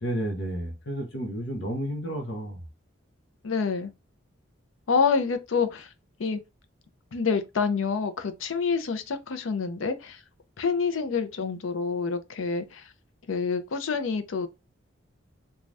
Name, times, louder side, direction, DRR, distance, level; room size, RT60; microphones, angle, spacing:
voice 1, 0.0-2.6, equal, 60° left, 0.8 m, -31 dB
voice 2, 3.4-3.9 4.9-5.9 6.2-6.4 7.1-10.2 10.6-12.9 13.3-14.5, left 5 dB, 80° left, 0.5 m, -27 dB
3.2 x 2.3 x 2.5 m
head